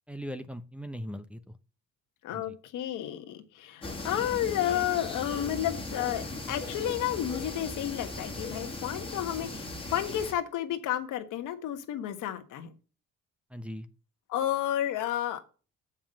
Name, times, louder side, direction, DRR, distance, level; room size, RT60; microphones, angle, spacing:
voice 1, 0.1-1.5 2.3-2.5 13.5-13.9, equal, 5° right, 6 dB, 0.8 m, -39 dB
voice 2, 2.2-12.7 14.3-15.4, left 11 dB, 90° left, 8 dB, 1.4 m, -31 dB
sound 1, 3.8-10.3, left 2 dB, 20° left, 2.1 m, -38 dB
7.3 x 5.5 x 7.5 m, 0.36 s
cardioid pair, 90°, 30 cm